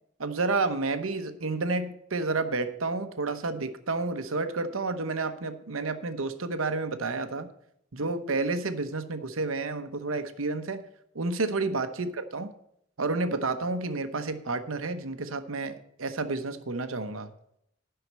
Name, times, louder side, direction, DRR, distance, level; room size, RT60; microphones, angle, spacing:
voice 1, 0.2-7.5 7.9-10.8 11.1-12.5 13.0-17.3, right 3 dB, 85° right, 9 dB, 1.0 m, -30 dB
11.5 x 5.8 x 7.4 m, 0.73 s
head